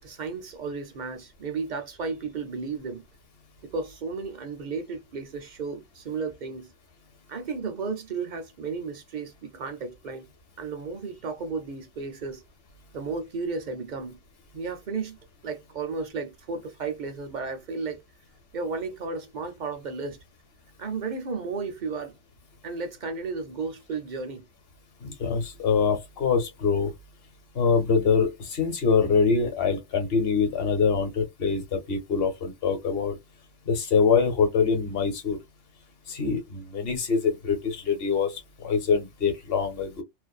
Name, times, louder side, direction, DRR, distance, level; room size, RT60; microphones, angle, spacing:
voice 1, 0.0-3.0 3.6-6.7 7.3-10.3 10.6-12.4 12.9-14.2 14.5-15.2 15.4-18.0 18.5-20.2 20.8-22.1 22.6-24.4, right 4 dB, 55° right, 0.5 m, -33 dB
voice 2, 25.0-26.9 27.5-33.1 33.7-35.4 36.1-40.0, left 5 dB, 55° left, 1.1 m, -24 dB
2.5 x 2.1 x 2.4 m
omnidirectional pair, 1.2 m